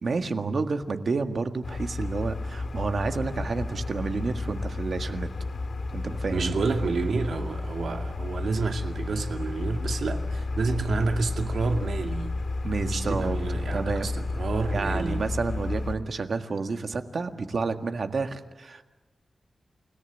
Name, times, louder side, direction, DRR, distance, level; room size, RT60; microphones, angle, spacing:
voice 1, 0.0-5.3 5.9-6.5 12.6-13.4 13.7-14.1 14.7-18.8, right 4 dB, 55° right, 7 dB, 1.7 m, -30 dB
sound 1, 1.6-15.9, left 2 dB, 60° left, 1.9 m, -32 dB
voice 2, 6.3-12.3 12.8-15.2, right 4 dB, 85° right, 4 dB, 2.3 m, -29 dB
29.0 x 18.0 x 9.0 m, 1.3 s
wide cardioid pair, 175°, 0 cm